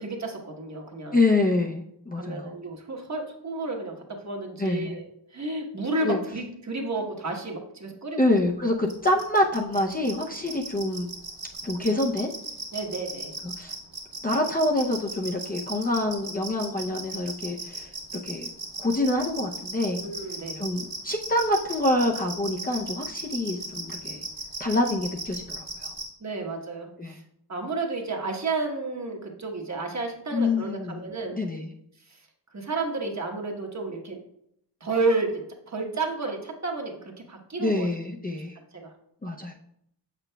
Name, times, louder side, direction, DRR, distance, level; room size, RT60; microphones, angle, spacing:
voice 1, 0.0-1.2 2.2-4.0 4.2-5.1 5.3-8.2 12.7-13.3 20.0-20.6 26.2-27.2 27.5-31.4 32.1-32.2 32.5-34.2 34.8-37.9 38.3-38.4 38.7-38.9, right 3 dB, 40° right, 1 dB, 1.1 m, -31 dB
voice 2, 1.1-2.6 4.6-5.0 6.0-6.2 8.2-11.1 11.6-12.3 13.4-13.7 14.2-17.9 18.2-18.5 18.8-20.0 20.6-24.2 24.6-25.9 27.0-27.2 30.3-31.0 31.3-31.7 37.6-38.5 39.2-39.5, left 2 dB, 20° left, 0 dB, 0.5 m, -26 dB
sound 1, 8.9-26.0, right 2 dB, 60° right, 1.6 m, -36 dB
7.0 x 6.1 x 2.2 m, 0.74 s
wide cardioid pair, 75°, 43 cm